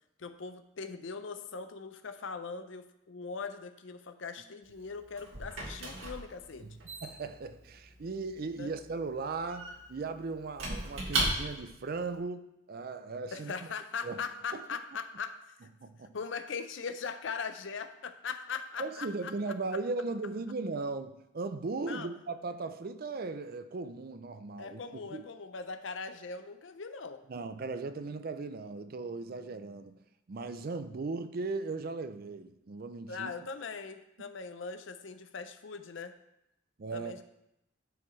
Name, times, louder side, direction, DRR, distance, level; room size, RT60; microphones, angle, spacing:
voice 1, 0.2-6.7 8.6-8.7 13.3-15.4 16.1-19.5 21.9-22.1 24.6-27.2 33.1-36.1 36.9-37.2, left 5 dB, 70° left, 9 dB, 0.6 m, -40 dB
Squeak / Wood, 4.6-11.8, right 2 dB, 90° right, 1.9 m, -37 dB
voice 2, 6.6-13.5 14.0-14.2 14.5-14.6 15.8-16.2 18.8-25.3 27.3-30.0 30.3-33.3 36.8-37.1, right 3 dB, 50° right, 11 dB, 0.5 m, -37 dB
12.0 x 4.8 x 3.2 m, 0.85 s
head